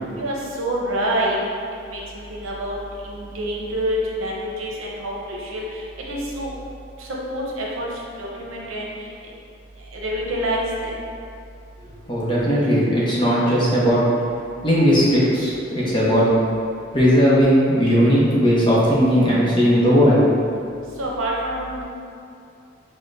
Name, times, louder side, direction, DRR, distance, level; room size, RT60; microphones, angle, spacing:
voice 1, 0.2-1.4 1.9-2.8 3.0-6.5 7.0-7.9 8.2-8.9 9.9-10.9 21.0-21.8, right 1 dB, 85° right, -3 dB, 0.7 m, -27 dB
voice 2, 12.1-14.0 14.6-16.2 16.9-20.2, equal, 25° left, -7 dB, 0.7 m, -17 dB
6.2 x 2.1 x 2.5 m, 2.5 s
head